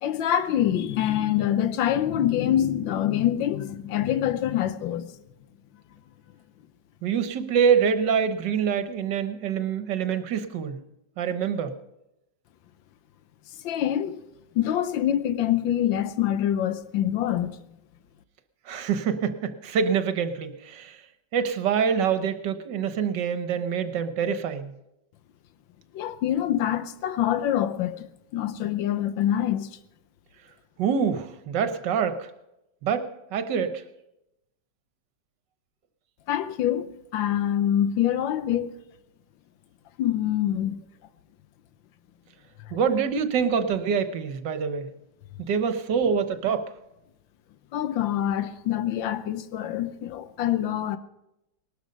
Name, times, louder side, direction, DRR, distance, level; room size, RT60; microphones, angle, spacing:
voice 1, 0.0-5.1 13.6-14.2 14.5-17.6 25.9-29.7 36.3-38.7 40.0-40.8 42.7-42.8 47.7-51.0, left 11 dB, 85° left, 1.5 m, -25 dB
voice 2, 7.0-10.8 11.2-11.7 18.6-21.0 21.3-24.8 30.8-32.3 32.8-33.8 42.7-44.9 45.4-46.7, right 7 dB, 70° right, 1.7 m, -25 dB
19.5 x 12.5 x 5.3 m
omnidirectional pair, 2.0 m